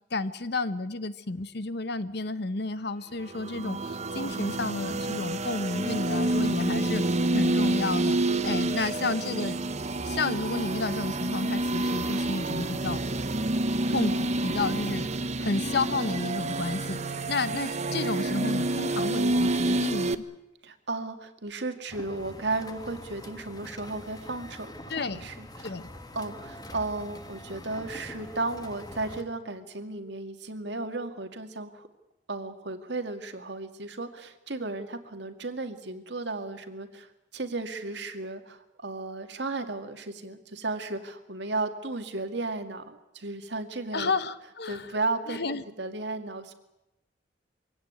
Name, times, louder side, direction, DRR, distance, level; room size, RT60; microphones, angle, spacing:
voice 1, 0.1-7.0 7.3-9.6 10.0-13.0 13.9-15.1 15.4-20.2 24.9-25.3 25.6-25.9 43.9-44.9 45.3-45.6, left 3 dB, 65° left, 14 dB, 1.0 m, -31 dB
sound 1, 3.2-20.1, right 2 dB, 40° right, 0.9 m, -28 dB
voice 2, 8.8-9.1 20.6-25.7 26.1-31.9 32.3-44.1 44.7-46.5, right 3 dB, 70° right, 7 dB, 2.1 m, -34 dB
sound 2, 21.9-29.2, left 1 dB, 20° left, 1.5 m, -44 dB
23.5 x 17.0 x 9.5 m, 0.93 s
head